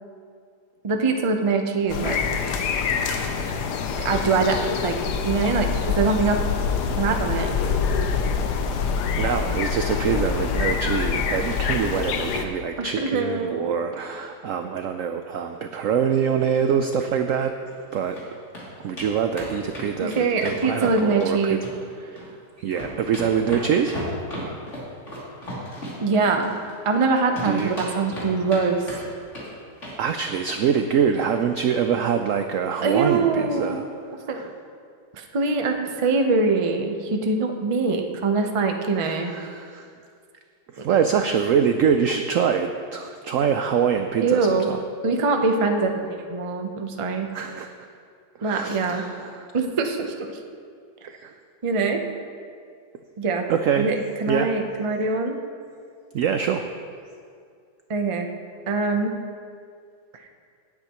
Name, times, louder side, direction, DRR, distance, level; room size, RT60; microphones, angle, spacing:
voice 1, 0.8-2.2 4.0-5.0 5.2-6.4 6.9-7.5 12.8-13.7 20.0-21.6 26.0-26.6 26.8-28.8 32.8-33.8 34.3-34.5 35.1-39.3 44.2-44.7 45.0-47.3 48.4-49.1 49.5-50.4 51.6-52.0 53.2-53.5 53.8-55.4 57.9-58.3 58.7-59.2, right 4 dB, 45° right, 3 dB, 0.4 m, -23 dB
sound 1, 1.9-12.5, left 6 dB, 75° left, 1.3 m, -25 dB
voice 2, 9.2-17.5 17.9-18.2 18.8-21.6 22.0-22.3 22.6-24.0 27.4-27.7 30.0-33.9 34.3-34.5 39.0-39.9 40.7-44.8 47.3-47.7 48.4-49.5 51.2-51.3 53.5-53.9 54.3-54.5 56.1-56.7, right 7 dB, 75° right, 7 dB, 0.7 m, -24 dB
sound 2, 17.7-18.2 18.5-18.6 19.0-19.1 19.4-21.3 21.6-22.3 22.6-27.1 27.3-28.6 28.9-29.5 29.8-30.0 30.3-30.4 30.7-30.8 31.2-31.3, equal, 40° left, 3.2 m, -35 dB
18.0 x 8.8 x 3.0 m, 2.2 s
omnidirectional pair, 1.9 m